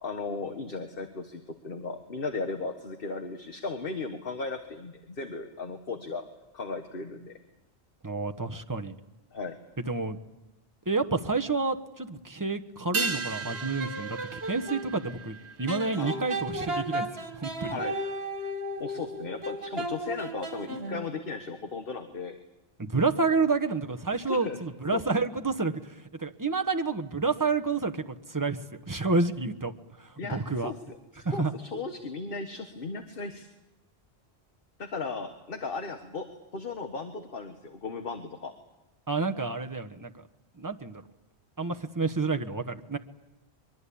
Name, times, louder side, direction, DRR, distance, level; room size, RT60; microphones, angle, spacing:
voice 1, 0.0-6.2 6.5-7.4 9.3-9.5 16.0-16.3 17.7-17.9 18.4-18.5 18.8-22.4 24.2-24.6 24.9-25.0 30.2-33.5 34.8-36.3 36.5-38.5, left 4 dB, 55° left, 7 dB, 1.6 m, -36 dB
voice 2, 8.0-8.9 9.9-10.2 10.9-17.1 17.3-17.7 22.8-25.9 26.2-28.6 28.9-29.7 30.0-30.7 31.2-31.5 39.1-40.1 40.6-41.0 41.6-43.0, right 3 dB, 20° right, 5 dB, 1.2 m, -29 dB
sound 1, 12.9-17.7 17.9-18.0, right 4 dB, 80° right, 1.6 m, -36 dB
sound 2, 13.4-14.9 15.7-21.1, right 1 dB, 65° right, 2.3 m, -35 dB
23.0 x 23.0 x 8.6 m, 1.0 s
omnidirectional pair, 1.1 m